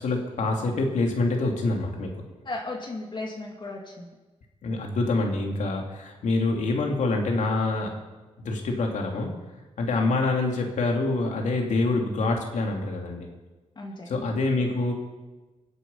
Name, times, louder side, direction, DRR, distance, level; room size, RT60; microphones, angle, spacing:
voice 1, 0.0-2.2 4.6-7.9 8.4-9.3 9.8-13.3 14.1-14.9, left 2 dB, 75° left, 1 dB, 2.9 m, -26 dB
voice 2, 2.4-4.1 10.1-10.2 13.8-14.1, left 2 dB, 40° left, 0 dB, 2.5 m, -35 dB
23.0 x 8.3 x 5.7 m, 1.2 s
cardioid pair, 90°, 13 cm